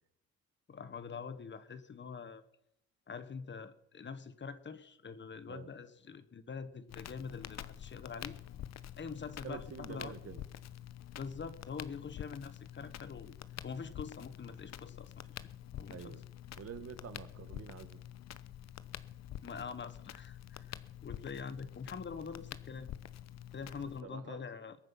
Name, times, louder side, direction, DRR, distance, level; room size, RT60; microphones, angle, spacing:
voice 1, 0.7-2.4 3.1-8.4 9.0-10.1 11.2-13.4 13.6-15.4 15.8-16.2 19.4-20.7 21.0-22.9 23.5-24.8, left 5 dB, 40° left, 13 dB, 1.2 m, -44 dB
Crackle, 6.9-24.0, left 11 dB, 60° left, 0.8 m, -47 dB
voice 2, 9.4-10.4 15.9-16.2 16.6-18.0 24.0-24.4, right 7 dB, 50° right, 12 dB, 1.4 m, -47 dB
21.5 x 9.1 x 5.8 m, 0.77 s
cardioid pair, 90°, 30 cm